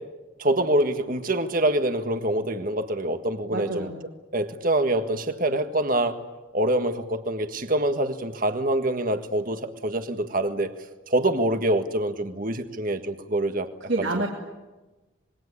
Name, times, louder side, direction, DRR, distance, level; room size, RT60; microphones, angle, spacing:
voice 1, 0.4-3.9 4.3-6.2 6.5-10.7 11.1-13.7, right 1 dB, 45° right, 7 dB, 1.6 m, -25 dB
voice 2, 3.5-3.9 13.9-14.3, right 2 dB, 65° right, 0 dB, 2.8 m, -27 dB
26.0 x 21.5 x 9.9 m, 1.1 s
head